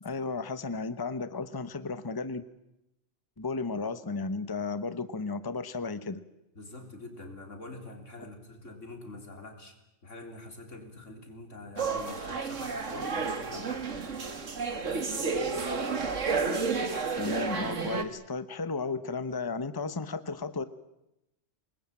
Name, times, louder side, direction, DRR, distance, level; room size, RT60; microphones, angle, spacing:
voice 1, 0.0-2.4 3.4-6.2 8.2-8.3 17.2-20.6, left 4 dB, 20° left, 13 dB, 1.0 m, -34 dB
voice 2, 6.5-9.7 10.0-14.1, left 2 dB, 85° left, 5 dB, 4.3 m, -45 dB
sound 1, 11.8-18.0, right 4 dB, 90° right, 2.2 m, -31 dB
26.0 x 21.0 x 8.9 m, 0.87 s
omnidirectional pair, 1.2 m